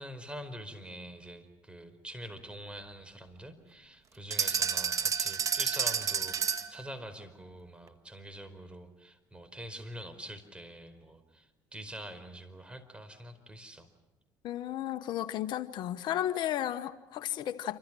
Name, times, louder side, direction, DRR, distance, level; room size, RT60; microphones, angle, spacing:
voice 1, 0.0-13.9, right 1 dB, 10° right, 10 dB, 4.7 m, -45 dB
sound 1, 4.3-6.8, right 7 dB, 40° right, 1.8 m, -30 dB
voice 2, 14.4-17.8, left 12 dB, 65° left, 11 dB, 1.1 m, -33 dB
28.0 x 25.5 x 6.3 m, 1.0 s
supercardioid pair, 85°, 8 cm